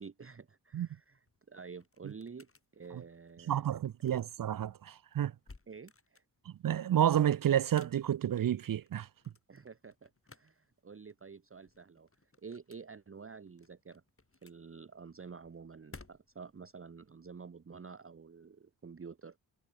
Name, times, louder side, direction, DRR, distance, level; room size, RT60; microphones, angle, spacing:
voice 1, 0.0-3.8 5.7-6.2 9.5-14.0 14.4-19.4, right 5 dB, 30° right, 1.0 m, -50 dB
sound 1, 1.1-16.6, left 3 dB, 30° left, 3.3 m, -60 dB
voice 2, 3.5-5.3 6.5-9.1, right 10 dB, 50° right, 0.6 m, -30 dB
cardioid pair, 45°, 43 cm